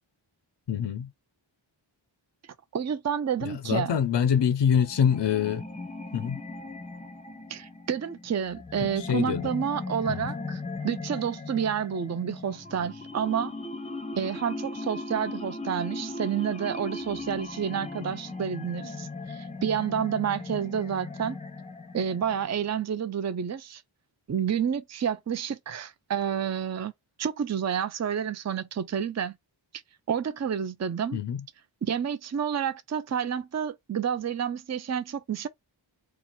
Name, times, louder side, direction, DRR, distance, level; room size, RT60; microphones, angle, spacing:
voice 1, 0.7-1.1 3.4-5.6 6.1-6.4 8.7-9.4 10.1-10.3 31.1-31.4, left 8 dB, 60° left, 0.5 m, -25 dB
voice 2, 2.7-4.0 7.5-13.5 14.2-21.4 21.9-23.8 24.3-26.9 27.2-29.3 30.1-31.2 31.8-35.5, right 8 dB, 35° right, 0.4 m, -29 dB
sound 1, 4.8-22.7, left 3 dB, 15° left, 0.6 m, -38 dB
2.9 x 2.4 x 4.2 m
wide cardioid pair, 40°, 49 cm